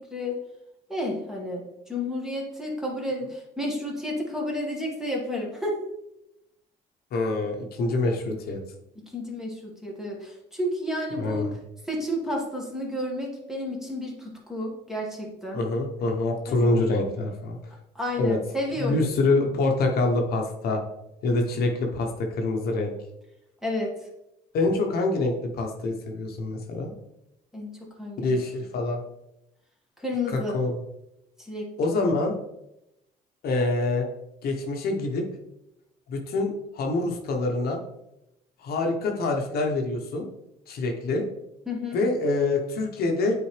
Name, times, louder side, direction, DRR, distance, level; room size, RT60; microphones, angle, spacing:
voice 1, 0.9-1.6 1.9-5.7 8.9-11.5 11.9-15.6 16.5-16.8 17.9-19.1 23.6-23.9 27.5-28.4 30.0-30.6 31.4-31.7 41.6-42.0, left 1 dB, 5° right, -2 dB, 1.8 m, -31 dB
voice 2, 7.1-8.6 11.2-11.6 15.5-17.6 18.2-18.4 18.8-20.8 21.2-22.9 24.5-26.9 28.2-29.0 30.3-30.7 31.8-32.3 33.4-34.1 34.4-35.2 36.1-37.8 38.6-40.3 40.7-41.2 41.9-43.4, left 2 dB, 65° left, 2 dB, 1.1 m, -25 dB
8.6 x 4.2 x 3.3 m, 0.87 s
cardioid pair, 110°, 17 cm